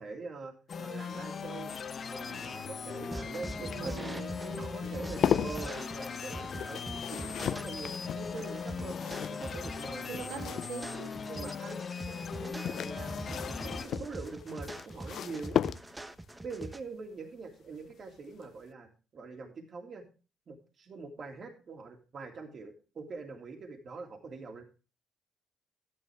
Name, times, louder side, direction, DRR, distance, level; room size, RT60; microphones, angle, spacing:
voice 1, 0.0-1.7 2.1-4.1 4.6-10.4 10.9-11.8 12.1-15.6 16.4-20.0 20.5-24.6, right 4 dB, 50° right, 2.2 m, -44 dB
sound 1, 0.7-13.9, left 6 dB, 50° left, 0.9 m, -39 dB
voice 2, 2.3-2.8 3.6-5.6 10.1-11.6, right 7 dB, 90° right, 3.1 m, -45 dB
sound 2, 2.4-11.2 12.3-16.2 17.8-18.2 18.4-18.5, left 9 dB, 65° left, 0.4 m, -37 dB
sound 3, 3.1-16.8, right 1 dB, 15° right, 0.9 m, -43 dB
11.5 x 10.0 x 3.4 m
cardioid pair, 90°, 0 cm